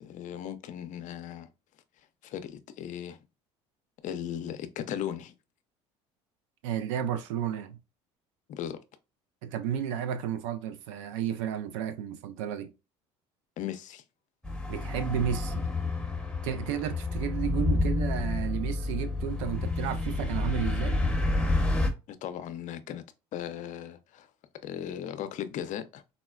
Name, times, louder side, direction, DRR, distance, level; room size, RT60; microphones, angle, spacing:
voice 1, 0.0-1.5 2.2-3.2 4.0-5.3 8.5-8.8 13.6-14.0 22.1-23.0 23.3-24.3 24.6-26.0, left 10 dB, 55° left, 0.5 m, -37 dB
voice 2, 6.6-7.8 9.4-12.7 14.7-15.7 16.4-21.0, right 9 dB, 85° right, 0.5 m, -32 dB
sound 1, 14.4-21.9, left 2 dB, 5° left, 0.8 m, -29 dB
4.0 x 2.1 x 2.3 m
hypercardioid pair, 75°, 15 cm